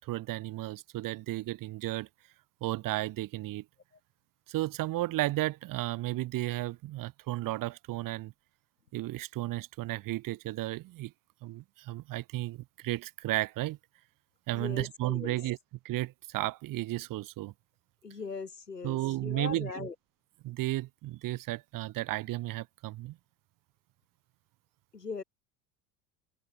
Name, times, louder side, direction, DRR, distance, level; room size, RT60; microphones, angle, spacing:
voice 1, 0.0-2.1 2.6-3.6 4.5-8.3 8.9-11.1 11.4-13.8 14.5-15.6 15.8-17.5 18.8-19.9 20.4-23.2, right 17 dB, 45° right, 2.5 m, -33 dB
voice 2, 14.5-15.4 18.0-19.9 24.9-25.2, left 5 dB, 80° left, 6.0 m, -39 dB
figure-of-eight pair, 70°, 47 cm